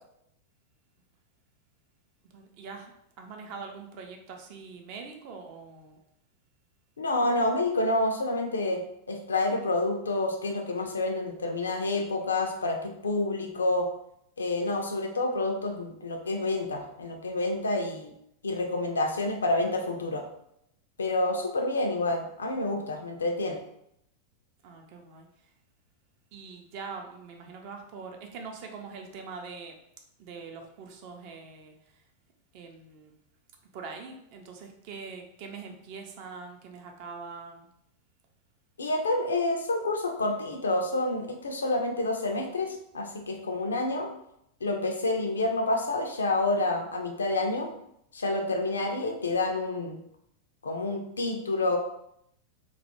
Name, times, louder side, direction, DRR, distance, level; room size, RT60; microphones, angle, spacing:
voice 1, 2.3-2.9 3.2-6.0 24.6-25.3 26.3-29.7 30.2-32.0 32.5-33.1 33.7-37.7, right 5 dB, 45° right, 3 dB, 0.4 m, -43 dB
voice 2, 7.0-8.8 9.1-13.9 14.4-18.1 18.4-20.2 21.0-23.6 38.8-44.1 44.6-47.7 48.1-50.0 50.6-51.8, left 2 dB, 70° left, 3 dB, 0.4 m, -28 dB
2.3 x 2.0 x 2.9 m, 0.76 s
figure-of-eight pair, 90°, 0 cm